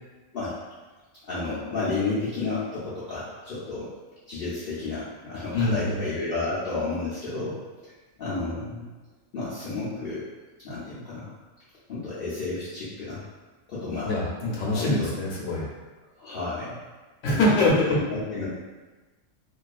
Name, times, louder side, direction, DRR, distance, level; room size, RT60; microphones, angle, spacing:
voice 1, 1.3-3.9 4.3-7.6 7.8-7.9 8.2-8.9 9.3-10.2 10.6-11.3 11.9-13.2 13.7-14.1 14.7-15.1 16.2-16.8 17.2-18.5, left 3 dB, 55° left, -11 dB, 0.8 m, -31 dB
voice 2, 5.5-6.0 14.0-15.6 17.2-18.0, left 1 dB, 75° left, -4 dB, 1.1 m, -24 dB
2.7 x 2.3 x 2.3 m, 1.2 s
omnidirectional pair, 1.3 m